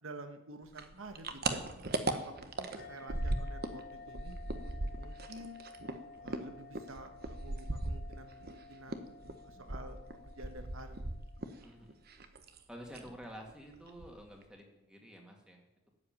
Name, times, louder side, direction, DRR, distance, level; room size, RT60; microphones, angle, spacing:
voice 1, 0.0-4.4 4.6-5.6 6.2-9.1 9.4-11.0, right 2 dB, 85° right, 8 dB, 1.5 m, -50 dB
sound 1, 0.7-3.8 4.1-8.6 8.9-11.6 11.9-12.6 12.9-13.2 13.5-13.6 13.9-14.4, right 2 dB, 50° right, 1.1 m, -38 dB
sound 2, 2.8-11.8, left 4 dB, 45° left, 0.9 m, -54 dB
voice 2, 11.6-12.0 12.7-15.6, equal, 5° right, 1 dB, 2.2 m, -50 dB
13.0 x 7.9 x 9.0 m, 0.96 s
head